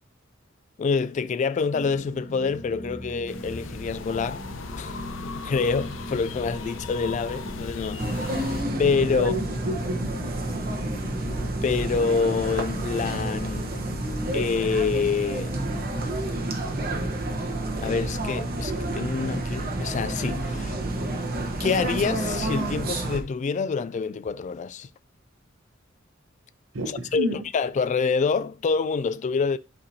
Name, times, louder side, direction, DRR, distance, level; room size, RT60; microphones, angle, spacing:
voice 1, 0.8-4.4 4.7-8.5 8.8-9.3 11.6-13.7 14.3-15.6 17.8-20.7 21.6-24.9 27.1-29.6, left 5 dB, 40° left, 0.3 m, -26 dB
sound 1, 1.7-16.1, left 1 dB, 55° left, 1.4 m, -40 dB
sound 2, 3.3-8.6, left 3 dB, 80° left, 0.7 m, -37 dB
sound 3, 8.0-23.2, right 1 dB, 50° right, 1.1 m, -29 dB
voice 2, 9.1-10.4 26.7-27.4, equal, 80° right, 0.9 m, -31 dB
11.5 x 4.2 x 2.8 m
head